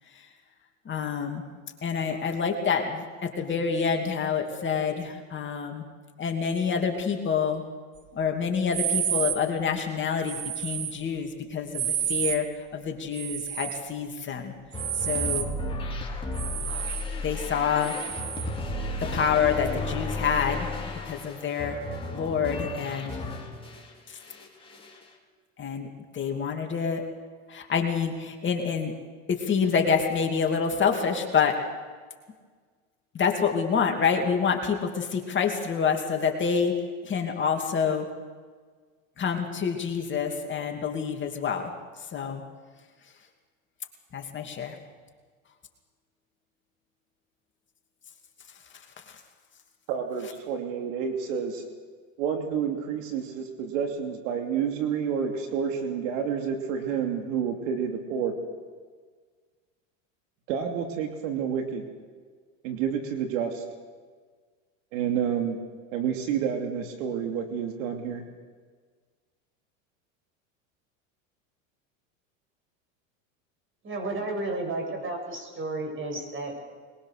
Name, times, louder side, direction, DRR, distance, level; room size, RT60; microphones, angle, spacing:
voice 1, 0.8-1.4 1.8-5.8 6.2-7.7 8.1-14.5 14.9-15.5 17.2-18.1 19.0-20.7 21.1-21.8 22.1-23.2 24.1-24.2 25.6-25.9 26.1-27.1 27.5-28.9 29.3-31.7 33.1-38.1 39.2-42.4 44.1-44.8 48.7-49.2, left 6 dB, 30° left, 2 dB, 2.7 m, -27 dB
sound 1, 8.7-9.4 10.2-11.0 11.7-12.4 13.1-13.9 14.7-15.5 16.3-17.1 17.8-18.5, right 10 dB, 45° right, 1.9 m, -30 dB
sound 2, 14.7-23.9 24.2-25.0, left 2 dB, 15° left, 3.9 m, -34 dB
voice 2, 49.9-51.6 52.2-58.3 60.5-61.8 62.6-63.6 64.9-65.6 65.9-68.2, right 7 dB, 75° right, 4 dB, 2.9 m, -29 dB
voice 3, 73.8-76.6, right 2 dB, 30° right, 2 dB, 7.7 m, -32 dB
22.0 x 21.5 x 6.6 m, 1.5 s
supercardioid pair, 110°, 39 cm